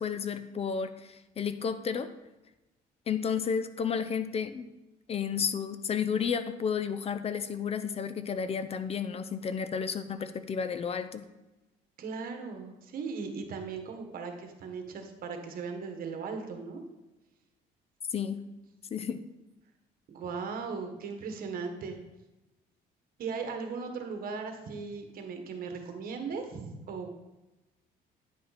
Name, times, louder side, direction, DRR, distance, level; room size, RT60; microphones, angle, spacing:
voice 1, 0.0-2.1 3.1-4.7 5.1-11.3 18.1-18.4 18.9-19.2, left 6 dB, 35° left, 11 dB, 0.5 m, -32 dB
voice 2, 12.0-16.8 20.1-22.0 23.2-27.1, right 5 dB, 60° right, 5 dB, 1.5 m, -38 dB
9.7 x 5.5 x 4.2 m, 1.1 s
cardioid pair, 110°, 17 cm